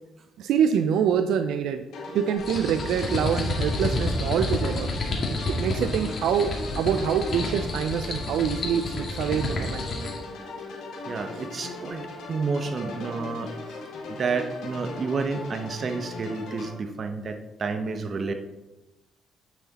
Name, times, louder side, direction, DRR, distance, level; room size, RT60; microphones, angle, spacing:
voice 1, 0.4-1.8 2.1-4.9 5.5-9.9, right 8 dB, 85° right, 8 dB, 0.5 m, -25 dB
sound 1, 1.9-16.7, left 2 dB, 80° left, 2.5 m, -38 dB
sound 2, 2.4-10.2, left 2 dB, 50° left, 2.2 m, -30 dB
voice 2, 11.1-13.5 14.1-18.3, right 4 dB, 45° right, 7 dB, 1.0 m, -30 dB
9.7 x 6.2 x 4.2 m, 1.0 s
cardioid pair, 90°, 0 cm